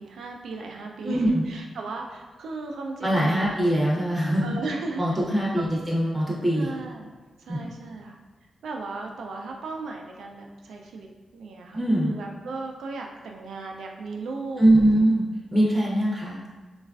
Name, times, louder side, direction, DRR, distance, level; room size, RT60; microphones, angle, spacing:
voice 1, 0.0-3.6 4.4-5.2 5.6-5.8 6.5-7.1 7.4-8.2 8.6-15.0, right 3 dB, 85° right, 1 dB, 0.3 m, -36 dB
voice 2, 1.0-1.4 3.0-4.6 5.0-6.7 7.5-7.6 11.7-12.1 14.6-15.2 15.5-16.4, right 1 dB, 5° right, -5 dB, 0.6 m, -22 dB
3.1 x 2.3 x 2.3 m, 1.3 s
cardioid pair, 85°, 0 cm